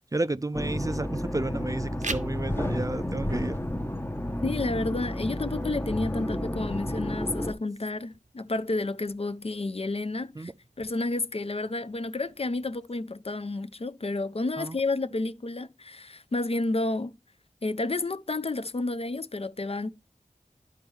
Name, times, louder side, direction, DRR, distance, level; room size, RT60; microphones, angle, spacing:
voice 1, 0.1-3.6 10.4-10.5 14.6-14.8, right 2 dB, 25° right, 0.3 m, -31 dB
sound 1, 0.5-7.5, left 1 dB, 15° left, 0.7 m, -31 dB
sound 2, 1.8-12.8, right 3 dB, 70° right, 0.6 m, -46 dB
voice 2, 4.4-10.5 10.8-17.1 17.6-19.9, left 2 dB, 50° left, 0.4 m, -30 dB
11.5 x 4.4 x 3.1 m
wide cardioid pair, 40°, 13 cm